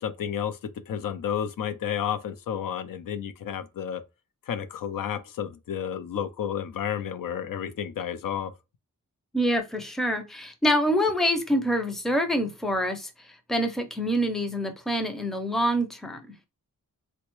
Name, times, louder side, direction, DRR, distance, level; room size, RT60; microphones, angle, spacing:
voice 1, 0.0-0.6 0.9-4.0 4.5-8.5, left 9 dB, 85° left, 0.5 m, -31 dB
voice 2, 9.3-16.2, equal, ahead, 0.4 m, -26 dB
3.8 x 2.1 x 3.0 m
wide cardioid pair, 150°, 33 cm